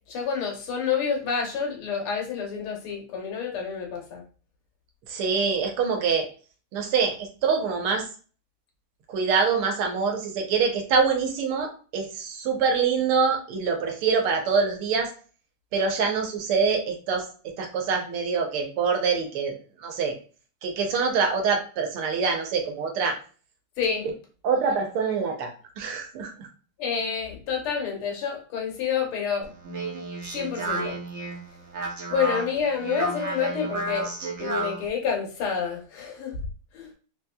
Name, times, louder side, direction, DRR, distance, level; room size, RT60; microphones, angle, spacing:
voice 1, 0.1-4.2 23.8-24.1 26.8-29.5 30.3-31.0 32.1-34.1 34.4-36.4 36.7-36.9, left 6 dB, 85° left, 1 dB, 1.9 m, -28 dB
voice 2, 5.1-6.3 6.7-8.1 9.1-15.1 15.7-19.5 19.8-20.2 20.6-23.2 24.4-26.5, right 5 dB, 80° right, 3 dB, 1.7 m, -25 dB
Speech, 29.4-34.9, right 3 dB, 60° right, 0.7 m, -32 dB
4.1 x 3.0 x 2.2 m, 0.38 s
omnidirectional pair, 2.4 m